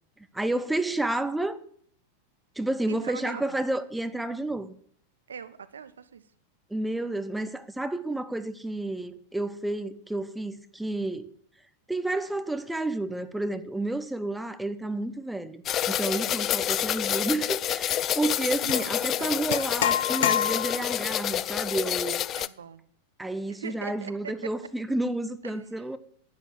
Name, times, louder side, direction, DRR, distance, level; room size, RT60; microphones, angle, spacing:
voice 1, 0.3-1.6 2.6-4.7 6.7-11.3 11.9-22.2 23.2-26.0, right 2 dB, 5° right, 1.0 m, -30 dB
voice 2, 2.9-3.6 5.3-6.2 18.6-18.9 19.2-19.4 22.3-22.8 23.5-24.5 25.4-25.6, right 7 dB, 70° right, 1.1 m, -41 dB
sound 1, 15.6-22.5, left 11 dB, 30° left, 0.5 m, -28 dB
sound 2, 18.7-18.9 19.5-21.0, left 10 dB, 55° left, 0.8 m, -27 dB
11.0 x 10.5 x 8.4 m
figure-of-eight pair, 90°, 0 cm